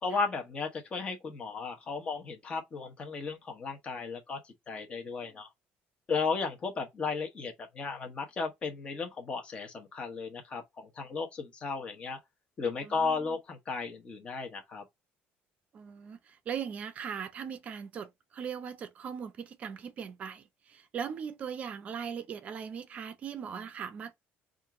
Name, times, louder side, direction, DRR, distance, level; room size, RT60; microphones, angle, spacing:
voice 1, 0.0-4.4 4.7-5.5 6.1-12.2 12.6-14.8, left 4 dB, 25° left, 1.0 m, -35 dB
voice 2, 12.8-13.4 15.7-24.2, right 7 dB, 35° right, 0.5 m, -39 dB
4.4 x 2.5 x 4.7 m
cardioid pair, 170°, 4 cm